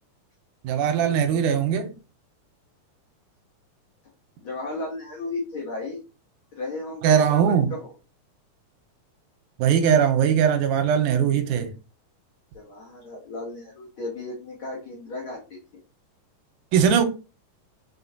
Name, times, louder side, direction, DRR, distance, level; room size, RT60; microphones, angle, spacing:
voice 1, 0.6-1.9 7.0-7.7 9.6-11.7 16.7-17.0, right 8 dB, 85° right, 2.2 m, -20 dB
voice 2, 4.4-6.0 6.5-7.9 12.5-15.8, left 2 dB, 60° left, 1.4 m, -35 dB
4.6 x 4.3 x 2.7 m
omnidirectional pair, 3.6 m